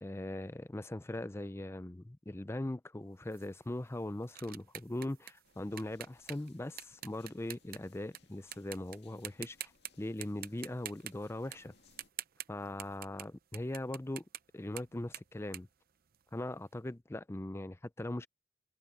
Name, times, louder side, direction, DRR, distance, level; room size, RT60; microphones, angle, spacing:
voice 1, 0.0-9.7 10.0-11.7 12.5-14.2 14.5-15.7 16.3-18.3, left 1 dB, 15° left, 0.5 m, -40 dB
sound 1, 3.3-8.2 8.5-9.0 9.2-9.9 10.2-16.5, right 12 dB, 50° right, 0.6 m, -47 dB
sound 2, 5.4-12.1, left 5 dB, 60° left, 2.1 m, -67 dB
head